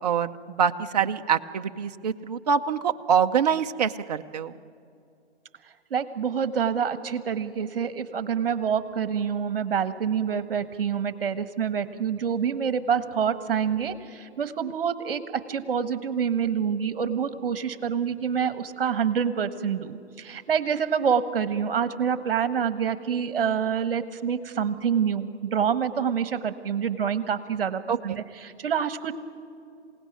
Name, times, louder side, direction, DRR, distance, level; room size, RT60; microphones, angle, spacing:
voice 1, 0.0-4.6 27.9-28.2, right 7 dB, 35° right, 7 dB, 0.7 m, -25 dB
voice 2, 5.9-29.1, right 7 dB, 55° right, 12 dB, 1.5 m, -27 dB
27.0 x 17.5 x 9.3 m, 2.4 s
figure-of-eight pair, 145°, 35 cm